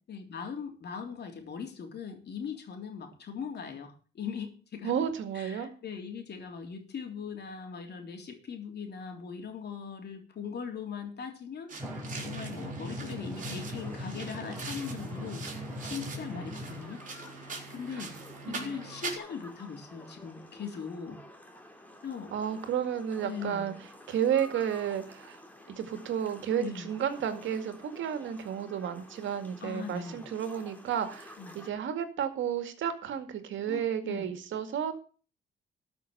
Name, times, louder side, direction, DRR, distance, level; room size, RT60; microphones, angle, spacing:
voice 1, 0.1-4.9 5.3-11.7 12.2-15.4 15.8-17.0 17.7-18.1 18.4-21.2 22.0-22.3 23.2-23.7 26.6-26.9 29.6-30.2 31.4-31.5 33.7-34.3, left 6 dB, 55° left, 4 dB, 3.5 m, -40 dB
voice 2, 4.8-5.7 17.9-18.1 18.5-18.8 22.3-23.7 24.1-25.4 25.7-34.9, right 9 dB, 75° right, 8 dB, 2.1 m, -32 dB
sound 1, 11.7-19.2, right 4 dB, 40° right, 4.2 m, -42 dB
Drum, 11.8-16.8, equal, 10° right, 4.7 m, -40 dB
sound 2, 13.4-31.7, left 1 dB, 10° left, 2.9 m, -51 dB
13.5 x 6.1 x 7.8 m, 0.38 s
cardioid pair, 90°, 20 cm